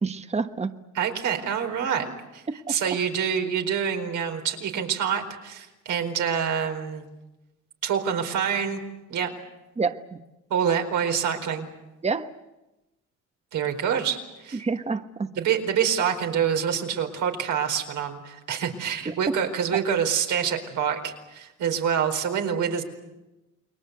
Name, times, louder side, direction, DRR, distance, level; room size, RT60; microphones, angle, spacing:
voice 1, 0.0-0.7 2.7-2.8 9.8-10.2 12.0-12.3 14.5-15.3 19.1-19.2, right 4 dB, 20° right, 9 dB, 1.2 m, -28 dB
voice 2, 0.9-2.4 2.7-7.0 7.8-8.8 9.1-9.3 10.5-11.7 13.5-14.6 15.4-22.8, right 7 dB, 80° right, 5 dB, 4.5 m, -26 dB
29.5 x 22.0 x 8.3 m, 1.0 s
cardioid pair, 90°, 30 cm